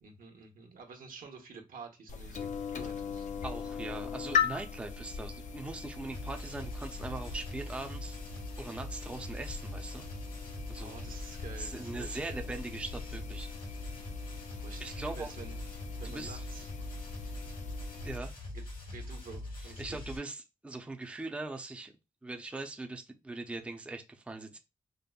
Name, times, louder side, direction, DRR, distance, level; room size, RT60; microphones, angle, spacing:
voice 1, 0.0-3.3 10.8-12.5 14.6-15.6 16.0-16.7 18.5-18.6 18.9-20.0, right 5 dB, 75° right, 0.9 m, -49 dB
sound 1, 2.1-18.2, left 6 dB, 55° left, 0.5 m, -39 dB
voice 2, 3.4-8.2 8.6-10.1 10.7-10.9 11.6-13.5 14.8-15.3 16.0-16.5 18.0-18.3 19.6-21.9 22.2-24.6, right 2 dB, 10° right, 0.4 m, -41 dB
sound 2, 6.1-20.2, left 2 dB, 70° left, 1.6 m, -42 dB
5.1 x 2.0 x 2.3 m
wide cardioid pair, 120°, 14 cm